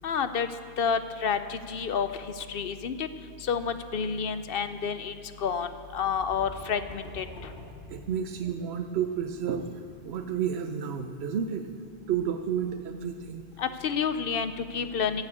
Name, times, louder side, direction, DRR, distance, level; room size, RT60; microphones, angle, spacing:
voice 1, 0.0-0.5 0.8-2.1 2.5-3.1 3.5-5.1 5.4-5.7 5.9-7.2 13.6-15.2, left 6 dB, 65° left, 10 dB, 0.8 m, -29 dB
Slow Creaky Piano Pedal Press, 5.8-8.7, equal, 80° left, 2.4 m, -47 dB
voice 2, 7.9-11.7 12.1-13.4, right 8 dB, 80° right, 5 dB, 1.0 m, -31 dB
11.5 x 11.0 x 8.5 m, 2.5 s
omnidirectional pair, 1.1 m